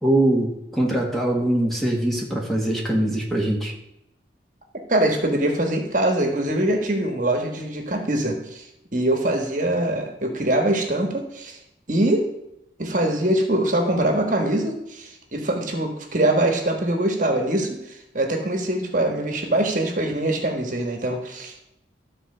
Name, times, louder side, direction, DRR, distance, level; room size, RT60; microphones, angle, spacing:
voice 1, 0.0-3.7, right 1 dB, ahead, -2 dB, 1.6 m, -22 dB
voice 2, 4.9-11.6 11.9-12.2 12.8-21.7, right 1 dB, 45° right, 4 dB, 1.4 m, -23 dB
13.0 x 4.4 x 6.7 m, 0.84 s
head